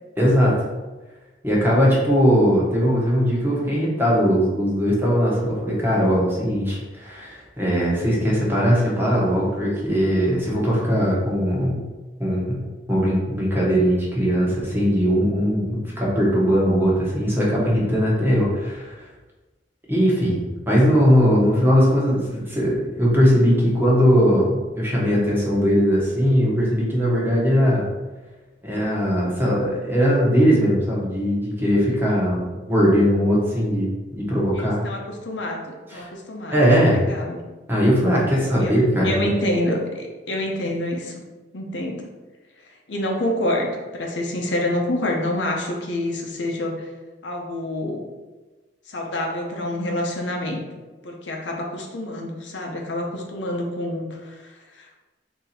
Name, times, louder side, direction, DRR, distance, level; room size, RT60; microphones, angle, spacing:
voice 1, 0.2-0.6 1.4-11.8 12.2-18.9 19.9-27.8 28.6-34.8 35.9-36.1 36.5-37.0 37.7-39.3, equal, 15° right, -5 dB, 1.2 m, -20 dB
voice 2, 34.5-36.6 36.9-37.4 38.3-41.2 41.5-42.0 42.6-46.9 47.2-48.1 48.9-50.6 51.0-55.0, left 1 dB, 85° left, 0 dB, 0.8 m, -27 dB
4.0 x 2.9 x 4.2 m, 1.2 s
head